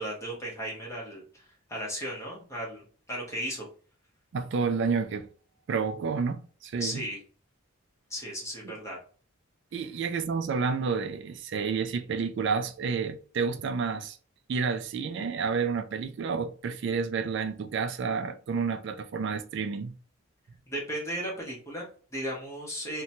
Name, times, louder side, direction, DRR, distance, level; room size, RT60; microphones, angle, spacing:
voice 1, 0.0-3.7 6.8-7.2 8.1-9.0 20.7-23.0, equal, 15° left, 0.9 m, -36 dB
voice 2, 4.3-5.3 5.7-7.1 9.7-14.2 14.5-20.0, right 5 dB, 55° right, 0.3 m, -30 dB
2.7 x 2.2 x 2.7 m
head